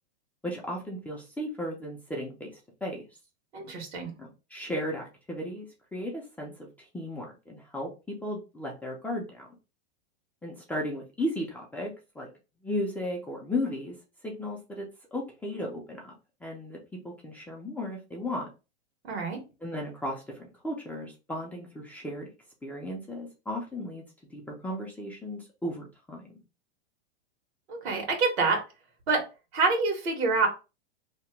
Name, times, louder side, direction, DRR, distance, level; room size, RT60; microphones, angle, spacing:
voice 1, 0.4-3.1 4.2-7.9 8.2-9.5 10.4-11.9 12.2-12.3 12.6-13.9 14.2-16.1 16.4-16.8 17.0-18.5 19.6-22.3 22.6-24.0 24.3-26.4, left 1 dB, 5° left, -2 dB, 0.5 m, -35 dB
voice 2, 3.5-4.1 19.0-19.4 27.7-28.6 29.1-29.2 29.5-30.5, right 4 dB, 75° right, 2 dB, 1.5 m, -26 dB
2.9 x 2.2 x 3.3 m, 0.29 s
hypercardioid pair, 130°, 32 cm